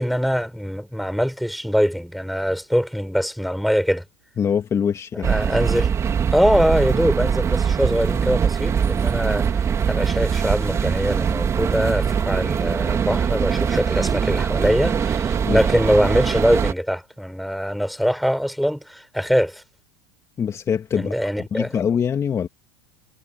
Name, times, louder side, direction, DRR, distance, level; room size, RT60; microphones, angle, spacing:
voice 1, 0.0-4.0 5.2-5.9 6.3-9.5 9.9-19.6 21.0-21.7, equal, ahead, 5.4 m, -22 dB
voice 2, 4.4-5.3 15.5-15.6 20.4-21.1 21.5-22.5, left 7 dB, 30° left, 2.1 m, -23 dB
sound 1, 5.2-16.7, right 7 dB, 30° right, 3.1 m, -22 dB
supercardioid pair, 110°, 10 cm